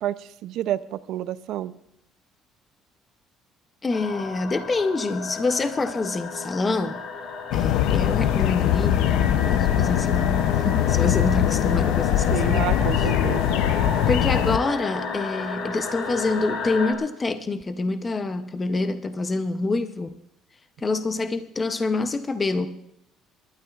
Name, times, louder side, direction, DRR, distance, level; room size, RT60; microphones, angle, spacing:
voice 1, 0.0-1.7 12.3-13.6, right 12 dB, 65° right, 15 dB, 0.5 m, -29 dB
voice 2, 3.8-7.0 7.5-12.7 14.1-20.1 20.8-22.7, left 3 dB, 20° left, 10 dB, 0.6 m, -26 dB
sound 1, 3.9-16.9, left 4 dB, 60° left, 2.2 m, -33 dB
sound 2, 7.5-14.6, left 11 dB, 85° left, 0.5 m, -22 dB
28.0 x 12.0 x 2.4 m, 0.78 s
cardioid pair, 145°, 0 cm